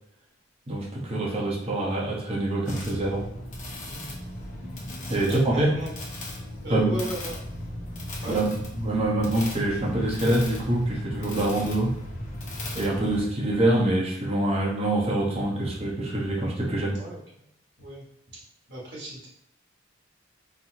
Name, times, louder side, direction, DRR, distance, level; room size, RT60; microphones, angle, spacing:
voice 1, 0.7-3.2 5.1-5.7 6.7-7.0 8.3-11.9 12.7-17.0, right 1 dB, 30° right, -3 dB, 0.8 m, -25 dB
sound 1, 2.6-13.2, left 1 dB, 40° left, 0.8 m, -36 dB
voice 2, 5.1-5.9 6.6-7.4 8.1-8.4 16.9-17.5 17.8-18.0 18.3-18.4 18.7-19.3, right 1 dB, 65° right, -6 dB, 1.4 m, -36 dB
4.1 x 2.0 x 2.8 m, 0.79 s
head